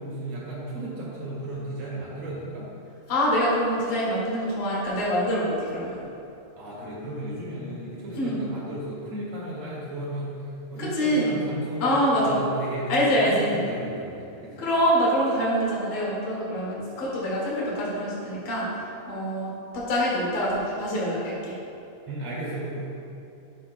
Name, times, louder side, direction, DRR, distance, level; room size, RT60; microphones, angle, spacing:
voice 1, 0.0-2.7 6.6-14.7 16.5-16.6 22.1-22.9, right 1 dB, 55° right, -6 dB, 2.8 m, -34 dB
voice 2, 3.1-6.0 8.2-8.4 10.8-11.3 11.8-12.4 12.9-13.6 14.6-21.6, equal, 40° left, -6 dB, 2.2 m, -25 dB
11.5 x 7.3 x 2.2 m, 2.8 s
omnidirectional pair, 4.0 m